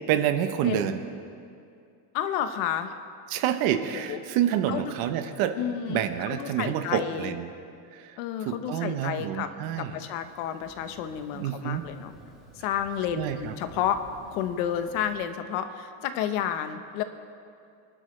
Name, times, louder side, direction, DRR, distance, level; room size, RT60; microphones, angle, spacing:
voice 1, 0.1-1.0 3.3-5.6 5.9-7.5 7.9-10.0 11.3-11.8 13.2-13.5, right 10 dB, 55° right, 9 dB, 1.0 m, -28 dB
voice 2, 0.6-0.9 2.1-2.9 3.9-4.2 4.7-4.9 5.6-6.0 6.3-7.3 8.2-9.5 9.8-12.1 12.5-14.0 14.3-17.0, left 9 dB, 75° left, 9 dB, 1.1 m, -31 dB
Thunder, 10.2-15.2, right 1 dB, ahead, 2.6 m, -52 dB
25.5 x 12.0 x 3.3 m, 2.4 s
cardioid pair, 170°, 43 cm